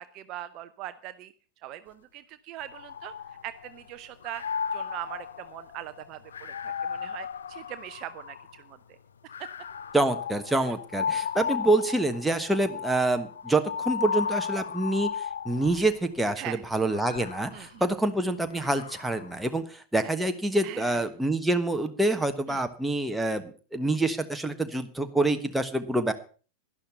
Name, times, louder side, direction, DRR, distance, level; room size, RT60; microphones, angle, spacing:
voice 1, 0.0-1.3 1.6-3.1 3.4-4.4 4.7-9.0 16.4-16.6 17.5-17.8 20.6-21.0 22.5-22.6, right 13 dB, 40° right, 12 dB, 0.7 m, -41 dB
sound 1, 2.6-3.8 4.2-8.6 9.3-16.0 16.7-19.3, left 7 dB, 65° left, 0.7 m, -35 dB
voice 2, 9.9-23.4 23.7-26.1, right 2 dB, 5° right, 6 dB, 1.3 m, -26 dB
11.5 x 11.5 x 5.6 m, 0.38 s
figure-of-eight pair, 90°, 0 cm